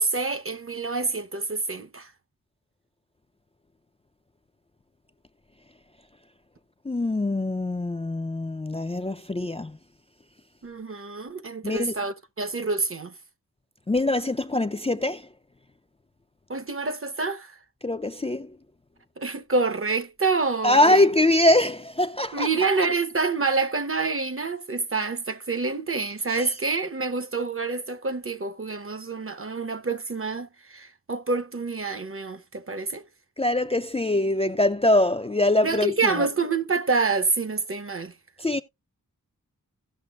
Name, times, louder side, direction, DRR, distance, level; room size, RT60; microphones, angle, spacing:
voice 1, 0.0-2.1 10.6-13.1 16.5-17.5 19.2-21.1 22.3-33.0 35.6-38.1, right 4 dB, 40° right, 0.8 m, -27 dB
voice 2, 6.9-9.8 11.6-12.0 13.9-15.3 17.8-18.6 20.6-22.5 26.3-26.5 33.4-36.3 38.4-38.6, left 1 dB, 20° left, 0.4 m, -23 dB
16.5 x 5.9 x 2.3 m
wide cardioid pair, 75°, 35 cm